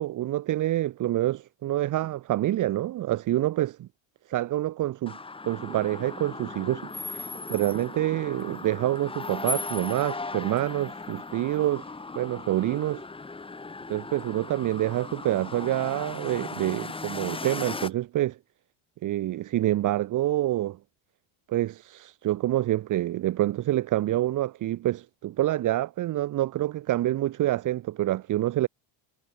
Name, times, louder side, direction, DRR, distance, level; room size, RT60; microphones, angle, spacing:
voice 1, 0.0-3.9 4.3-5.2 5.4-13.0 13.9-18.4 19.0-20.8 21.5-28.7, right 14 dB, 45° right, 1.2 m, -27 dB
sound 1, 5.1-17.9, left 3 dB, 10° left, 1.9 m, -37 dB
cardioid pair, 140°, 43 cm